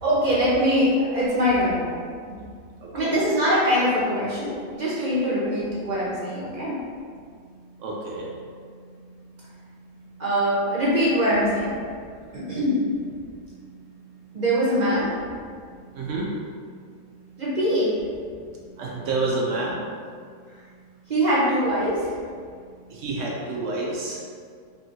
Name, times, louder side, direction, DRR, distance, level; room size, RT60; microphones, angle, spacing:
voice 1, 0.0-2.0 2.9-6.8 10.2-11.7 12.3-12.8 14.3-15.1 17.4-17.9 21.1-22.2, equal, 35° right, -8 dB, 0.8 m, -22 dB
voice 2, 2.8-3.2 7.8-8.3 11.8-12.3 15.2-15.4 15.9-16.4 18.2-19.8 22.9-24.2, right 2 dB, 65° right, -3 dB, 0.7 m, -30 dB
3.4 x 2.6 x 4.3 m, 2.1 s
omnidirectional pair, 1.8 m